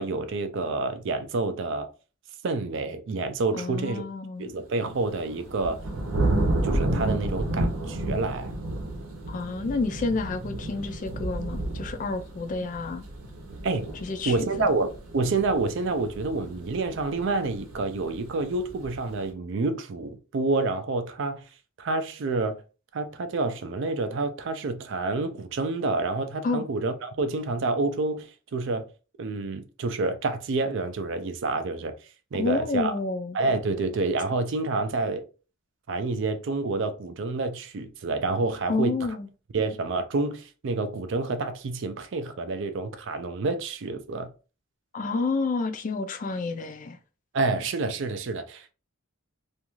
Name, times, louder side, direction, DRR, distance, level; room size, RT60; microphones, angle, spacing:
voice 1, 0.0-1.9 2.4-4.0 4.4-5.8 6.6-8.5 13.6-13.9 14.3-21.4 21.8-22.6 22.9-28.9 29.2-31.9 32.3-32.9 33.3-35.2 35.9-38.9 39.5-44.3 47.3-48.7, right 3 dB, 55° right, 0.4 m, -28 dB
voice 2, 3.5-4.5 9.3-13.0 14.0-14.7 26.4-26.6 32.3-33.4 38.7-39.3 44.9-47.0, left 3 dB, 35° left, 0.3 m, -29 dB
sound 1, 5.0-19.2, right 1 dB, 80° right, 0.8 m, -31 dB
2.5 x 2.3 x 3.0 m
head